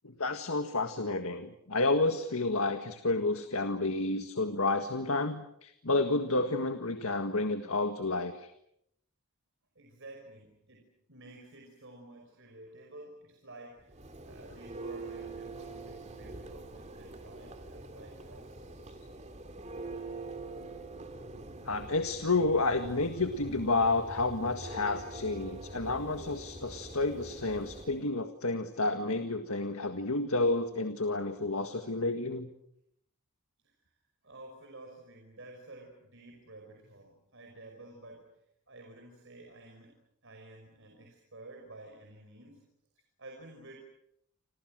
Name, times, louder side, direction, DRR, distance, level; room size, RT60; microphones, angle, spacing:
voice 1, 0.2-8.5 21.7-32.5, left 2 dB, 75° left, 8 dB, 1.8 m, -30 dB
voice 2, 9.8-14.0 14.2-18.7 33.6-34.0 34.2-38.3 38.7-40.0 40.2-42.6 43.0-43.8, right 2 dB, 60° right, 2 dB, 5.5 m, -51 dB
Church bell, 13.8-28.0, right 2 dB, 30° right, 2.5 m, -44 dB
29.5 x 27.0 x 6.4 m, 0.76 s
head